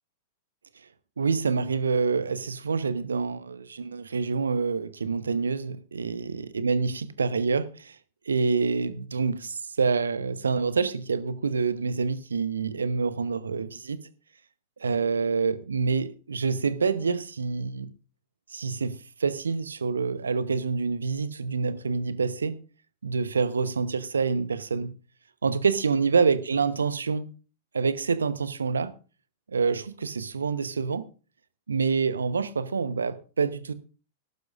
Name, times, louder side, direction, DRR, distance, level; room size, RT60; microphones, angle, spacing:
voice 1, 1.2-8.0 8.3-14.0 14.8-17.9 18.5-22.6 23.0-24.9 25.4-27.3 27.7-28.9 29.5-31.1 31.7-33.7, right 5 dB, 80° right, 0.9 m, -27 dB
18.0 x 12.0 x 2.5 m
figure-of-eight pair, 95°, 0 cm